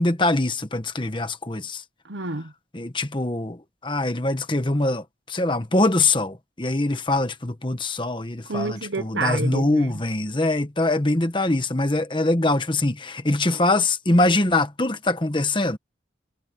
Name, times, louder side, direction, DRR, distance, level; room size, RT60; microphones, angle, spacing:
voice 1, 0.0-1.8 2.7-15.8, left 2 dB, 25° left, 1.3 m, -23 dB
voice 2, 2.0-2.5 8.5-10.0, right 3 dB, 85° right, 1.3 m, -29 dB
head